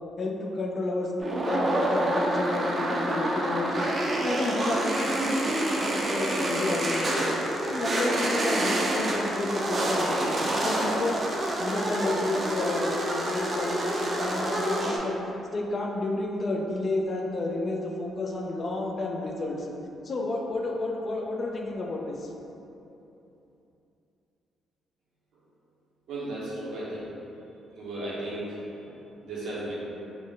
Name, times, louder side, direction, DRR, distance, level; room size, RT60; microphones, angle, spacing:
voice 1, 0.2-3.9 4.2-7.3 7.7-11.2 11.6-15.1 15.5-19.7 20.0-22.3 28.9-29.0, left 2 dB, 40° left, 0 dB, 0.4 m, -31 dB
sound 1, 1.2-15.0, right 1 dB, 35° right, 0.5 m, -27 dB
voice 2, 26.1-27.1 27.8-28.6 29.2-29.7, right 1 dB, 80° right, -7 dB, 0.9 m, -34 dB
3.6 x 2.1 x 3.6 m, 2.9 s
cardioid pair, 90°, 0 cm